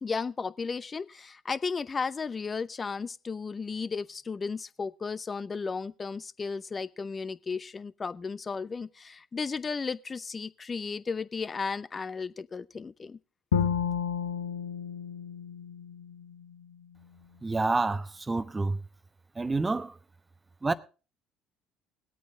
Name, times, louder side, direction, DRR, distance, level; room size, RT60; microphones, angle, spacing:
voice 1, 0.0-13.2, left 5 dB, 30° left, 0.7 m, -34 dB
Bowed string instrument, 13.5-16.6, left 7 dB, 85° left, 0.7 m, -31 dB
voice 2, 17.4-18.8 19.4-20.0 20.6-20.7, right 3 dB, 20° right, 1.0 m, -28 dB
20.0 x 8.5 x 3.7 m
hypercardioid pair, 55°, 0 cm